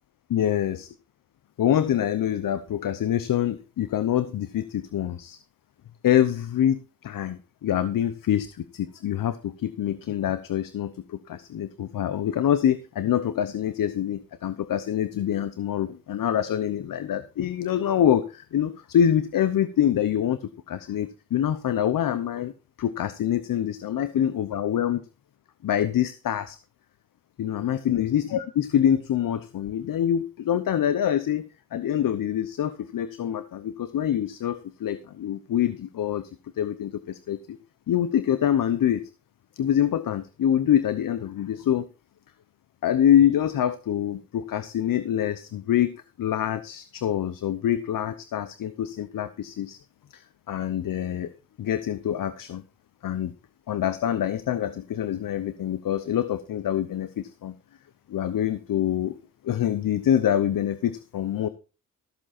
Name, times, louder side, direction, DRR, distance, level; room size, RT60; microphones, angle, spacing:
voice 1, 0.3-0.9 1.6-5.4 6.0-22.5 22.8-25.0 25.6-26.6 27.4-36.3 36.6-37.6 37.9-39.0 39.6-41.9 42.8-49.8 50.1-51.3 51.6-52.6 53.0-53.3 53.7-57.6 58.1-59.2 59.4-61.5, left 10 dB, 70° left, 13 dB, 0.9 m, -25 dB
14.0 x 7.5 x 4.3 m, 0.33 s
supercardioid pair, 55°, 35 cm